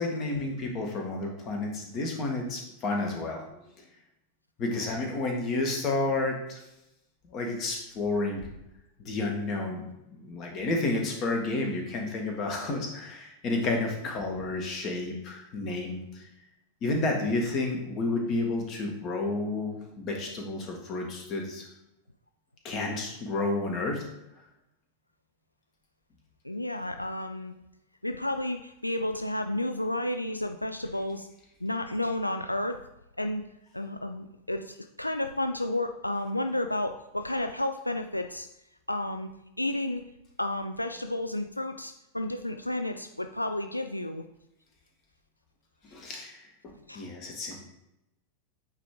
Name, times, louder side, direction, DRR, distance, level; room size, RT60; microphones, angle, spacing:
voice 1, 0.0-3.6 4.6-6.6 7.3-8.5 9.0-9.8 10.1-16.2 16.8-21.6 22.6-24.0 45.9-46.4 46.6-47.6, left 2 dB, 35° left, 2 dB, 1.5 m, -31 dB
voice 2, 26.4-27.5 28.0-31.3 31.6-32.8 33.2-33.4 33.7-38.5 38.9-39.3 39.6-40.1 40.4-44.2 46.9-47.1, left 1 dB, 85° left, 7 dB, 0.3 m, -31 dB
8.8 x 3.2 x 3.7 m, 0.87 s
figure-of-eight pair, 90°, 0 cm